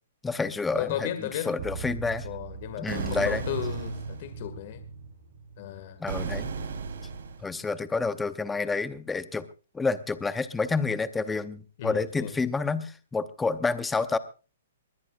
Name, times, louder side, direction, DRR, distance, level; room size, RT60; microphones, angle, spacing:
voice 1, 0.2-1.1 1.5-2.3 2.8-3.4 6.0-6.5 7.4-9.5 9.7-14.2, left 4 dB, 5° left, 12 dB, 0.8 m, -29 dB
voice 2, 0.8-1.5 2.2-4.8 5.6-6.0 11.8-12.3, left 11 dB, 40° left, 9 dB, 1.9 m, -34 dB
sound 1, 1.6-6.3 6.6-6.7, right 5 dB, 55° right, 4.1 m, -39 dB
sound 2, 2.9-4.3 6.1-7.5, right 5 dB, 75° right, 3.5 m, -35 dB
21.0 x 19.5 x 2.5 m, 0.34 s
hypercardioid pair, 165°, 0 cm